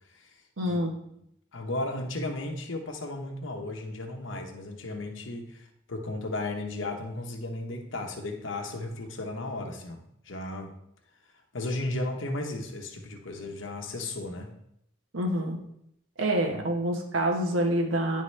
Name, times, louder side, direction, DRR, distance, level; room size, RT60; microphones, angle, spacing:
voice 1, 0.6-0.9 15.1-15.6 16.2-18.2, right 1 dB, 90° right, 2 dB, 1.2 m, -27 dB
voice 2, 1.5-10.0 10.3-10.7 11.5-14.5 16.5-16.6, left 2 dB, 75° left, 2 dB, 0.9 m, -35 dB
10.5 x 3.6 x 3.2 m, 0.76 s
head